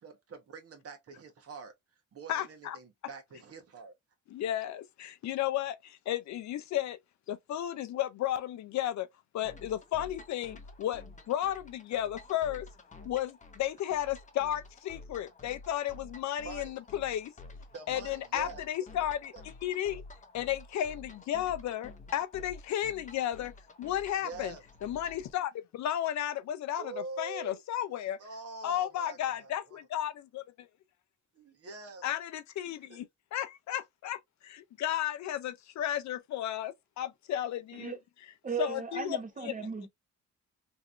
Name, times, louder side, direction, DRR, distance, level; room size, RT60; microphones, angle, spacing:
voice 1, 0.0-1.7 2.1-3.9 16.4-16.8 17.7-18.6 24.2-24.6 26.8-27.6 28.2-29.8 31.4-32.0 32.9-33.0, right 4 dB, 50° right, 1.1 m, -45 dB
voice 2, 2.3-2.8 4.3-7.0 7.3-9.1 9.3-12.7 13.0-17.3 17.9-20.0 20.3-23.5 23.8-24.5 24.8-28.2 28.6-30.4 32.0-33.1 33.3-38.0 38.6-39.5, left 11 dB, 65° left, 0.6 m, -33 dB
sound 1, 9.4-25.3, left 3 dB, 25° left, 0.7 m, -50 dB
voice 3, 38.4-39.9, right 5 dB, 25° right, 1.0 m, -36 dB
3.1 x 2.7 x 2.4 m
cardioid pair, 90°, 30 cm